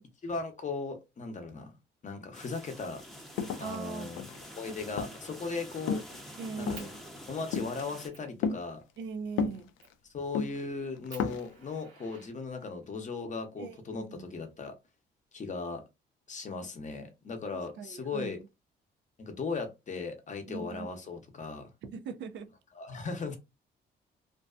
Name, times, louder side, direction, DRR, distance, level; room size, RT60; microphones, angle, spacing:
voice 1, 0.2-1.7 2.0-3.0 3.6-4.2 4.5-6.9 7.3-8.8 10.1-14.7 15.3-15.8 16.3-18.4 19.2-21.7 22.8-23.4, left 4 dB, 40° left, 0.7 m, -37 dB
sound 1, 2.3-8.1, equal, ahead, 0.6 m, -47 dB
sound 2, 3.0-3.1 3.4-4.5 5.0-5.3 5.8-6.2 6.6-7.0 7.5-7.8 8.4-8.6 9.4-9.9 10.3-10.6 11.0-11.5, left 6 dB, 90° left, 0.4 m, -32 dB
voice 2, 3.6-4.1 4.6-5.2 6.4-7.0 9.0-9.7 13.6-14.3 17.8-18.5 20.5-21.0 21.8-22.5, right 5 dB, 65° right, 0.5 m, -41 dB
Fire, 4.6-4.9 5.2-6.2 6.7-6.9 7.5-7.6 8.1-8.3 9.8-10.1 10.6-10.7 11.1-12.9 13.9-14.9, right 4 dB, 90° right, 1.0 m, -53 dB
2.6 x 2.2 x 2.4 m
cardioid pair, 90°, 20 cm